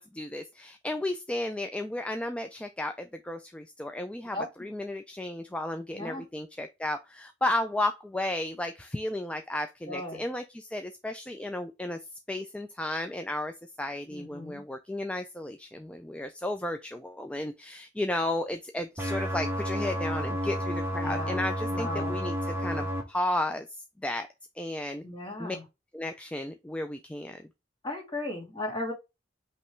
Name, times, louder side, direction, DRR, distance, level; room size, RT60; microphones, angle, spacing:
voice 1, 0.0-12.0 12.3-24.3 24.6-25.0 25.4-25.6 25.9-27.4, left 1 dB, 5° left, 0.3 m, -33 dB
voice 2, 5.9-6.2 9.9-10.2 14.1-14.6 20.9-22.2 25.0-25.6 27.8-28.9, left 1 dB, 25° left, 2.5 m, -36 dB
sound 1, 19.0-23.0, equal, 10° right, 1.1 m, -31 dB
5.5 x 3.0 x 3.2 m
head